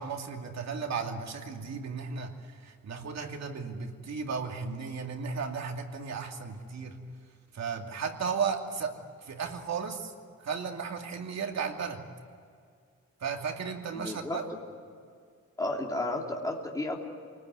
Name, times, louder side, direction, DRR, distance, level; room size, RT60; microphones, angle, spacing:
voice 1, 0.0-7.0 7.5-8.9 9.2-10.1 10.4-12.0 13.2-14.4, right 5 dB, 60° right, 3 dB, 2.5 m, -35 dB
voice 2, 13.9-14.6 15.6-17.0, left 1 dB, 10° left, -1 dB, 3.3 m, -33 dB
28.5 x 20.0 x 9.6 m, 2.2 s
wide cardioid pair, 150°, 31 cm